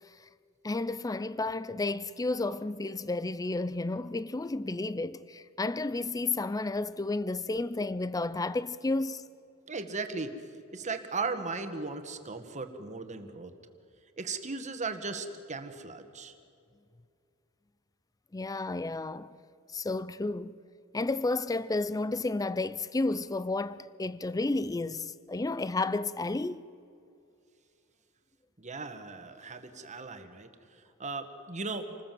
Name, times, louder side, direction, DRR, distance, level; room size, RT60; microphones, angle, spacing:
voice 1, 0.6-9.2 18.3-19.3 19.7-20.5 20.9-26.6, left 2 dB, 15° left, 0.5 m, -32 dB
voice 2, 9.7-10.3 10.7-13.5 14.2-16.3 28.6-32.0, right 4 dB, 35° right, 1.7 m, -37 dB
27.5 x 20.0 x 7.7 m
head